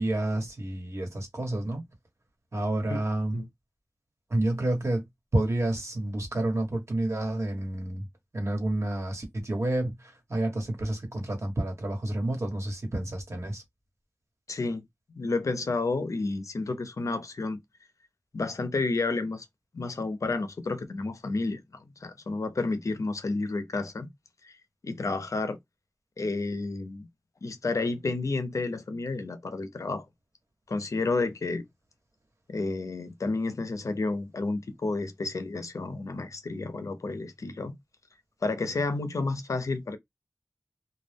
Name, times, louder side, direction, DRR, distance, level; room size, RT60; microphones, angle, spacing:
voice 1, 0.0-1.8 2.5-3.4 4.3-5.0 5.3-8.1 8.3-13.6, right 1 dB, 60° right, 1.2 m, -29 dB
voice 2, 14.5-14.8 15.2-17.6 18.3-19.5 19.7-24.1 24.4-24.5 24.8-25.6 26.2-27.1 27.4-30.1 30.7-31.6 32.5-37.8 38.4-40.0, left 3 dB, 75° left, 0.5 m, -31 dB
2.2 x 2.0 x 3.3 m
cardioid pair, 40°, 6 cm